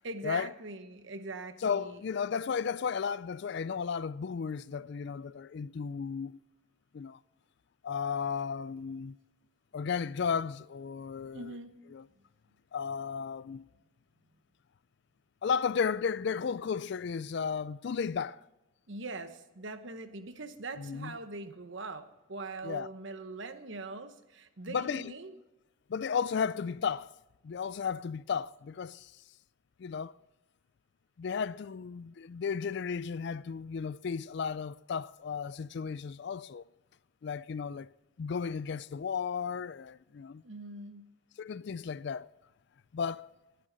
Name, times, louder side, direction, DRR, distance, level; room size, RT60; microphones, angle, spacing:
voice 1, 0.0-2.0 11.3-11.7 18.9-22.0 22.3-25.4 40.4-41.1, right 3 dB, 60° right, 1.0 m, -42 dB
voice 2, 1.6-6.4 6.9-7.2 7.8-9.2 9.7-11.6 11.9-12.0 12.7-13.7 15.4-18.4 20.8-21.2 22.6-22.9 24.7-25.1 25.9-27.1 27.4-29.1 29.8-30.1 31.2-36.6 37.2-37.9 38.2-40.4 41.4-42.3 42.9-43.3, left 6 dB, 55° left, 0.3 m, -34 dB
17.5 x 11.5 x 4.0 m
head